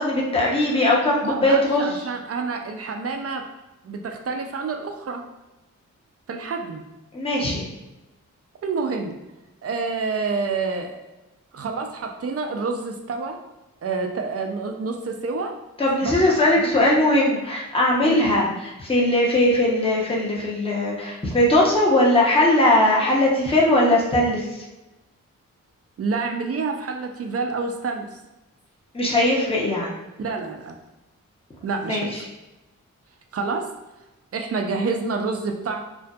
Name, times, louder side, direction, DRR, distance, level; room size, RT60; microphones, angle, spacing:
voice 1, 0.0-1.9 7.1-7.7 15.8-18.5 18.8-24.4 28.9-29.9 31.9-32.0, left 1 dB, 15° left, -4 dB, 0.7 m, -19 dB
voice 2, 1.2-3.5 3.8-5.2 6.3-6.8 8.6-9.2 9.6-11.0 11.5-13.4 13.8-15.5 16.0-16.7 18.0-18.3 26.0-28.2 30.2-30.8 31.6-32.2 33.3-33.7 34.3-35.8, right 4 dB, 45° right, 4 dB, 0.5 m, -28 dB
2.6 x 2.4 x 2.3 m, 1.0 s
cardioid pair, 40°, 33 cm